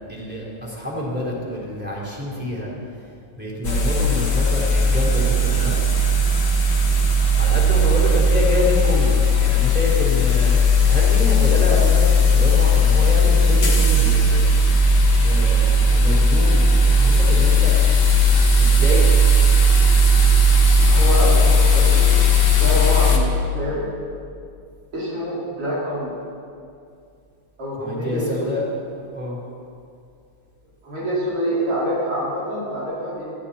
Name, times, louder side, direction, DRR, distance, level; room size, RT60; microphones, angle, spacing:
voice 1, 0.1-2.7 3.4-5.8 7.4-14.4 15.2-17.8 18.6-19.1 27.8-28.6 29.1-29.4, equal, 5° right, -5 dB, 3.9 m, -27 dB
sound 1, 3.6-23.2, left 1 dB, 50° left, 2.3 m, -16 dB
voice 2, 20.8-22.2 22.6-23.9 24.9-26.1 27.6-28.5 30.8-33.2, equal, 90° right, -9 dB, 5.6 m, -26 dB
21.0 x 14.5 x 4.4 m, 2.4 s
omnidirectional pair, 2.4 m